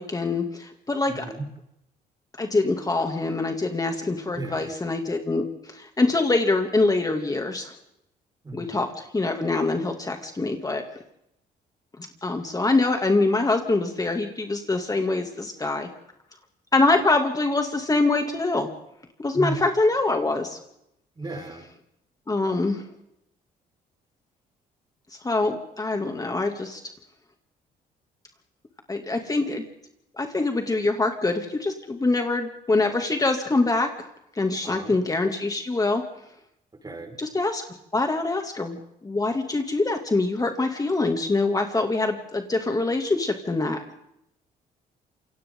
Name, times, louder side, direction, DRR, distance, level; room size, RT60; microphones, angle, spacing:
voice 1, 0.0-1.3 2.4-7.7 8.5-10.8 12.0-15.9 16.7-18.7 19.2-20.6 22.3-22.8 25.2-26.8 28.9-29.6 30.2-34.1 34.4-36.0 37.2-37.6 37.9-38.8 39.0-43.8, left 3 dB, 20° left, 4 dB, 2.8 m, -24 dB
voice 2, 1.1-1.4 4.3-4.8 8.4-8.8 19.3-19.7 21.2-21.7 34.6-35.0 36.8-37.2, right 2 dB, 25° right, 3 dB, 5.6 m, -34 dB
28.0 x 25.0 x 4.0 m, 0.79 s
cardioid pair, 90°, 17 cm